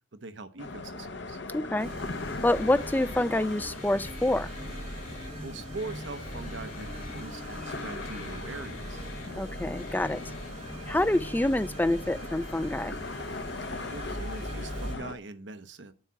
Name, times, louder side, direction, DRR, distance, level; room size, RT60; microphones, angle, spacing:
voice 1, 0.1-1.4 5.4-9.0 13.9-15.9, right 3 dB, 60° right, 0.8 m, -42 dB
sound 1, 0.6-15.2, left 3 dB, 55° left, 0.9 m, -40 dB
voice 2, 1.5-1.9 2.4-4.5 9.4-10.3 10.9-12.9, left 1 dB, 10° left, 0.3 m, -27 dB
sound 2, 1.8-14.9, right 1 dB, 35° right, 2.2 m, -41 dB
Guitar, 2.5-10.5, left 5 dB, 90° left, 2.8 m, -50 dB
8.0 x 5.7 x 7.4 m
head